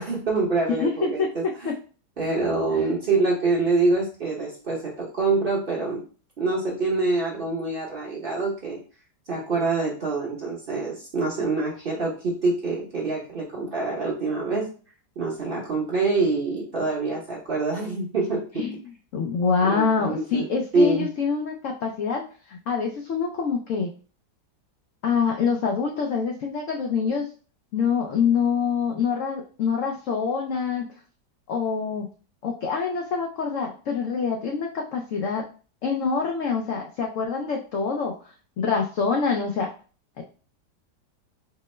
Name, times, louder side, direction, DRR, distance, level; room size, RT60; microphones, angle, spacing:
voice 1, 0.0-1.7 2.2-6.0 6.4-8.8 9.3-14.7 15.2-18.7 19.6-20.5 20.7-21.1, right 3 dB, 40° right, -4 dB, 0.8 m, -25 dB
voice 2, 0.8-1.7 18.6-18.8 19.1-23.9 25.0-27.3 27.7-30.9 31.5-32.1 32.4-35.5 35.8-38.1 38.6-39.7 40.2-40.3, left 5 dB, 80° left, 1 dB, 0.7 m, -25 dB
4.3 x 2.0 x 3.1 m, 0.39 s
omnidirectional pair, 1.9 m